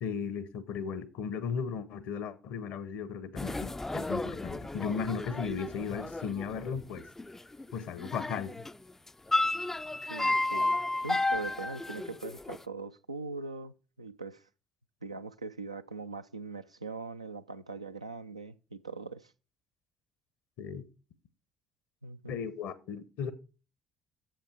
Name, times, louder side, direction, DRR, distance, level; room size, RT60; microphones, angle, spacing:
voice 1, 0.0-7.0 7.7-8.5 20.6-20.9 22.3-23.3, left 6 dB, 60° left, 0.9 m, -36 dB
sound 1, 3.4-8.7 9.1-12.6, left 2 dB, 10° left, 0.4 m, -33 dB
voice 2, 10.1-14.4 15.0-19.3 22.0-22.4, right 3 dB, 85° right, 0.4 m, -41 dB
7.9 x 7.3 x 4.8 m
figure-of-eight pair, 50°, 3 cm